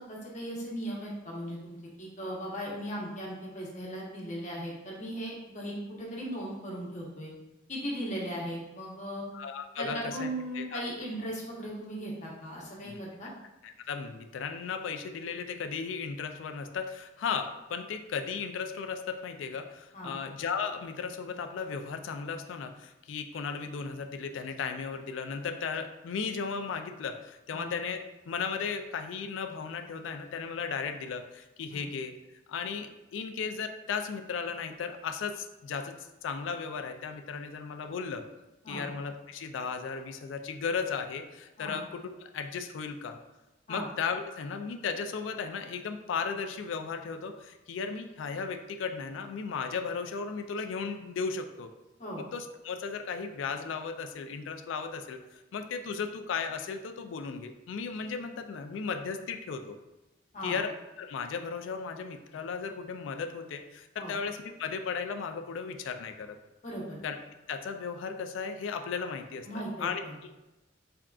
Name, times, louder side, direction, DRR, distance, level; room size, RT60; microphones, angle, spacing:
voice 1, 0.0-7.3 7.7-9.2 9.8-13.3 19.9-20.1 27.5-27.7 31.7-31.8 38.6-38.8 41.6-41.8 43.7-43.9 52.0-52.2 60.3-60.6 64.0-64.1 66.6-67.0 69.4-70.1, equal, 40° left, -4 dB, 0.9 m, -37 dB
voice 2, 9.3-10.8 12.8-13.0 13.6-32.1 32.5-35.9 36.2-38.2 38.7-43.2 43.7-51.7 52.2-59.8 60.4-66.4 67.0-67.2 67.5-70.0, left 5 dB, 75° left, 7 dB, 0.3 m, -35 dB
3.7 x 3.4 x 2.3 m, 1.0 s
head